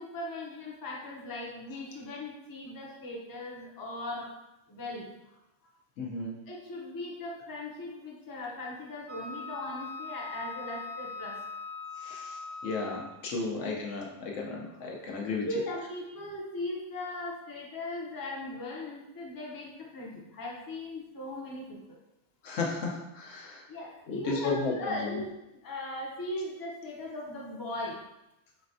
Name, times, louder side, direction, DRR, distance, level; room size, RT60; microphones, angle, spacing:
voice 1, 0.0-4.3 4.7-5.1 6.5-11.4 13.5-13.7 15.5-22.0 23.7-25.3 25.6-28.0, left 1 dB, 25° left, -3 dB, 0.5 m, -38 dB
voice 2, 6.0-6.3 12.0-15.5 22.4-23.6 24.1-25.2, left 3 dB, 85° left, -1 dB, 1.1 m, -34 dB
Wind instrument woodwind instrument, 9.1-13.3, left 3 dB, 85° right, 1.2 m, -41 dB
4.4 x 3.1 x 2.6 m, 0.92 s
omnidirectional pair, 1.3 m